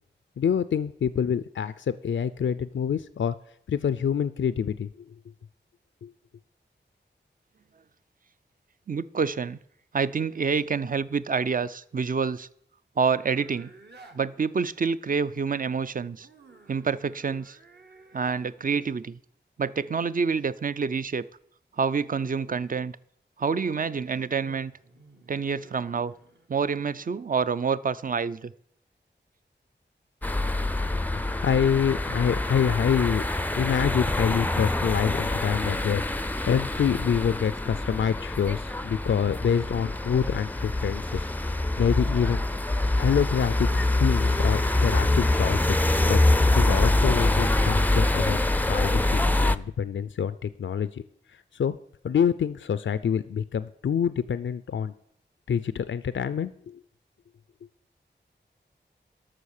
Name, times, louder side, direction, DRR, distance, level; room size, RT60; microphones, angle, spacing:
voice 1, 0.4-3.3 3.7-5.1 6.0-6.1 31.3-42.4 43.0-48.4 48.7-51.0 51.3-51.8 52.0-54.9 55.5-56.8, left 7 dB, 85° left, 14 dB, 0.4 m, -27 dB
voice 2, 8.9-9.6 9.9-12.5 13.0-13.7 14.1-16.3 16.7-17.6 18.1-19.2 19.6-21.2 21.8-22.9 23.4-24.7 25.3-26.1 26.5-28.5, right 5 dB, 45° right, 16 dB, 0.5 m, -27 dB
sound 1, 13.0-14.2 16.2-18.5 23.8-26.5, right 3 dB, 65° right, 1.5 m, -53 dB
sound 2, 30.2-49.6, left 2 dB, 10° left, 0.4 m, -25 dB
sound 3, 41.7-47.8, right 1 dB, 25° right, 0.9 m, -50 dB
12.5 x 6.4 x 6.5 m, 0.68 s
wide cardioid pair, 85°, 19 cm